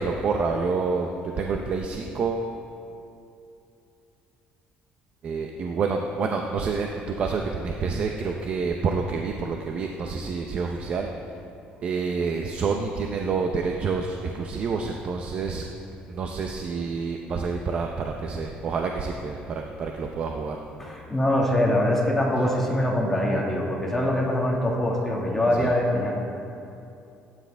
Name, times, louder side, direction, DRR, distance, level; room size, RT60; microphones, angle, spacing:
voice 1, 0.0-2.5 5.2-11.1 11.8-15.6 16.1-20.6 25.6-25.7, right 4 dB, 40° right, 2 dB, 0.7 m, -28 dB
voice 2, 20.8-26.1, left 1 dB, 10° left, -3 dB, 1.9 m, -23 dB
16.5 x 9.9 x 3.5 m, 2.7 s
cardioid pair, 145°, 3 cm